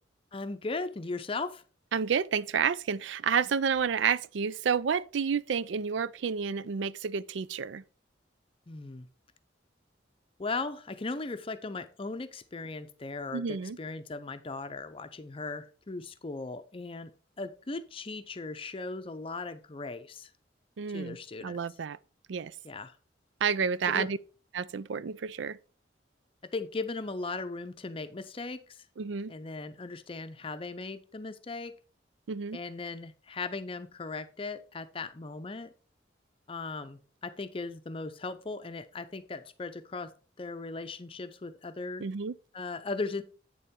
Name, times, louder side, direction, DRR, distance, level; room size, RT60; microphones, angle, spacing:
voice 1, 0.3-1.6 8.7-9.1 10.4-17.1 17.4-20.3 20.9-21.6 22.6-22.9 23.9-24.1 26.5-28.8 29.3-31.8 32.5-35.7 36.5-40.1 40.4-42.1 42.5-43.2, left 3 dB, 30° left, 0.6 m, -38 dB
voice 2, 1.9-7.8 13.3-13.8 20.8-22.0 22.3-22.5 23.4-24.2 24.5-25.6 29.0-29.3 32.3-32.6 42.0-42.3, right 6 dB, 80° right, 0.4 m, -30 dB
8.5 x 6.9 x 3.7 m
head